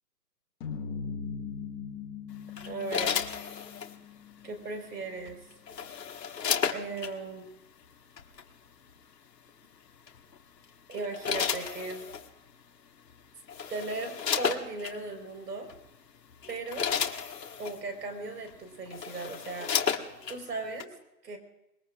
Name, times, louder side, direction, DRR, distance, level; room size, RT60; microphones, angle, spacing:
sound 1, 0.6-5.0, left 6 dB, 15° left, 1.9 m, -40 dB
sound 2, 2.6-3.9 5.3-7.1 8.2-8.4 10.1-10.4 10.9-12.3 13.1-13.2 13.5-15.0 15.7-15.9 16.3-17.8 18.5-18.6 18.9-20.4 20.8-20.9, left 7 dB, 75° left, 1.8 m, -32 dB
voice 1, 2.7-3.2 4.4-5.4 6.7-7.5 10.9-12.1 13.7-15.7 16.5-16.9 17.6-19.9 20.3-20.9 21.2-21.4, right 3 dB, 75° right, 5 dB, 4.9 m, -37 dB
26.0 x 21.0 x 2.5 m, 0.92 s
hypercardioid pair, 160°, 49 cm